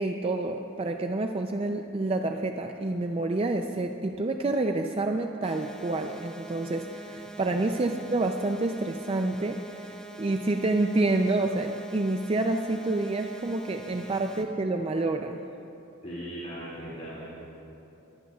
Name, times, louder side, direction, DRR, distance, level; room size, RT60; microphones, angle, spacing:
voice 1, 0.0-15.4, right 2 dB, 30° right, 5 dB, 0.4 m, -28 dB
sound 1, 5.4-14.4, right 2 dB, 5° left, 0.9 m, -44 dB
voice 2, 16.0-17.3, equal, 35° left, -8 dB, 2.3 m, -39 dB
22.5 x 15.5 x 2.3 m, 2.9 s
head